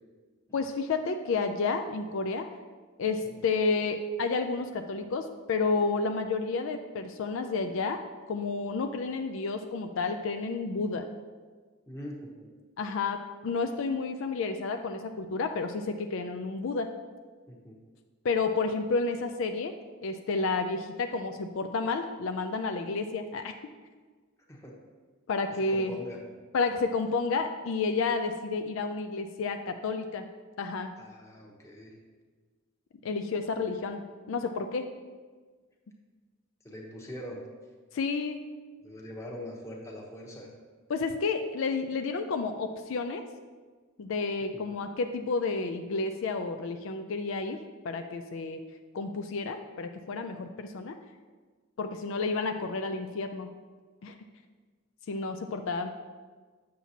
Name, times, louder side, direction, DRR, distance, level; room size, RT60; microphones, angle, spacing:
voice 1, 0.5-2.5 3.0-8.0 8.3-11.1 12.8-16.9 18.2-19.7 20.0-23.5 25.3-25.9 26.5-30.3 30.6-30.9 33.0-34.9 37.9-38.4 40.9-43.2 44.0-47.6 47.8-48.6 48.9-51.0 51.8-53.5 54.0-54.1 55.1-55.9, left 4 dB, 65° left, 7 dB, 0.4 m, -31 dB
voice 2, 11.9-12.5 17.5-17.8 24.5-24.8 25.7-26.2 31.0-31.9 36.6-37.4 38.8-40.5 44.5-44.6, left 1 dB, 15° left, -1 dB, 1.0 m, -42 dB
7.5 x 7.0 x 2.8 m, 1.4 s
head